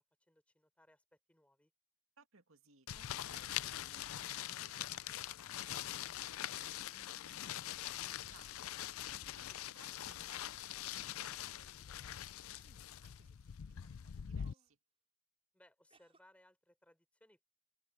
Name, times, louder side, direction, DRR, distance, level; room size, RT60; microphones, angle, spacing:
voice 1, 0.0-1.7 9.5-9.9 15.5-17.4, left 1 dB, 5° left, 4.0 m, -68 dB
voice 2, 2.2-14.8, right 4 dB, 65° right, 2.2 m, -66 dB
sound 1, 2.9-14.5, left 11 dB, 70° left, 0.4 m, -43 dB
sound 2, 5.4-6.2 7.1-7.9 8.2-9.3 9.7-10.5 11.2-12.3 13.0-13.4 14.1-14.8 15.9-16.2, right 2 dB, 25° right, 5.8 m, -75 dB
head